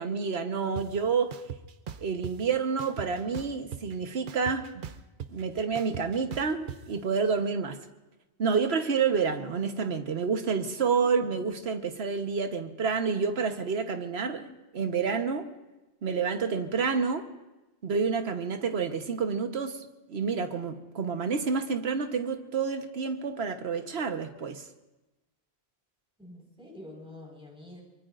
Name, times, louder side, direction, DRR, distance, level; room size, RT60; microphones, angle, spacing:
voice 1, 0.0-1.3 2.0-4.8 5.3-7.8 8.4-15.5 16.0-17.3 17.8-24.6, right 5 dB, 70° right, 7 dB, 1.4 m, -29 dB
sound 1, 0.8-0.9 1.3-2.3 2.8-3.9 4.3-6.8, right 8 dB, 55° right, 0.8 m, -39 dB
voice 2, 10.9-11.4 26.2-27.8, left 1 dB, 5° right, -2 dB, 5.0 m, -47 dB
24.0 x 23.5 x 2.5 m, 1.1 s
omnidirectional pair, 1.1 m